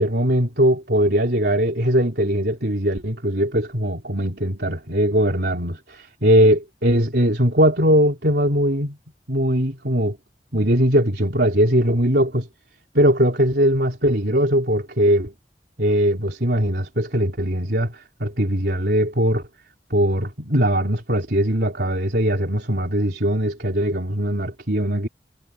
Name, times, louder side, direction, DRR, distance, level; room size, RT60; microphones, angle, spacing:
voice 1, 0.0-9.0 9.3-10.2 10.5-12.5 12.9-15.3 15.8-19.4 19.9-25.1, equal, 70° right, 3.6 m, -20 dB
head